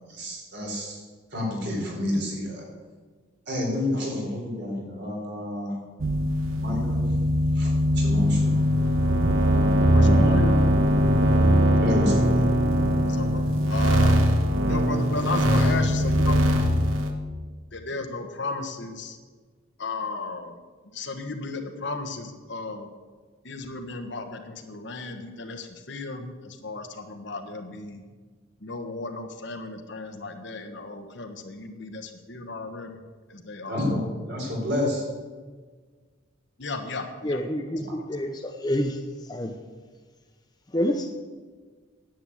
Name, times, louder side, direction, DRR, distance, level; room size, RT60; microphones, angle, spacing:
voice 1, 0.1-1.0 1.3-2.6 3.5-5.7 6.5-7.0 7.5-7.7 7.9-8.6 9.9-10.5 11.8-12.4 33.7-35.0, left 1 dB, 50° right, -1 dB, 4.3 m, -29 dB
sound 1, 6.0-17.1, equal, 70° right, 1.3 m, -21 dB
voice 2, 9.9-10.6 13.0-14.2 14.7-16.4 17.7-19.2 19.8-20.5 20.9-22.9 23.4-28.0 28.6-33.0 33.3-34.0 36.6-37.4 37.8-38.0, left 3 dB, 55° left, 6 dB, 1.3 m, -35 dB
voice 3, 37.2-37.8 38.1-39.0 39.3-39.5 40.7-41.1, equal, 20° left, 5 dB, 0.6 m, -27 dB
10.5 x 8.1 x 8.6 m, 1.5 s
head